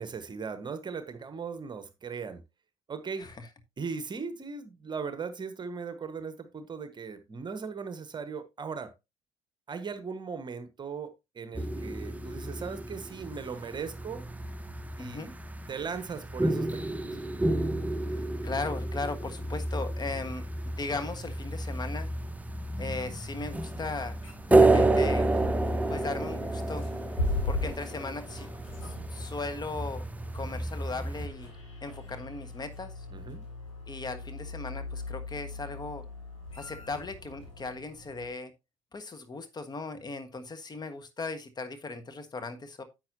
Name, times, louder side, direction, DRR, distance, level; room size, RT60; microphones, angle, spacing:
voice 1, 0.0-2.4 2.9-3.3 3.8-8.9 9.7-14.2 15.0-15.3 15.7-17.0 33.1-33.4, right 5 dB, 30° right, 1.2 m, -38 dB
sound 1, 11.5-31.3, right 2 dB, 10° right, 0.9 m, -30 dB
voice 2, 15.0-15.3 18.4-20.4 20.8-22.1 22.8-24.2 24.5-25.2 25.9-26.9 27.4-28.5 28.8-30.0 30.3-31.5 31.8-33.1 33.9-36.1 36.6-38.5 38.9-42.8, left 3 dB, 25° left, 1.4 m, -37 dB
sound 2, 22.8-38.3, left 2 dB, 85° left, 3.4 m, -40 dB
10.5 x 7.8 x 2.8 m
figure-of-eight pair, 55°, 16 cm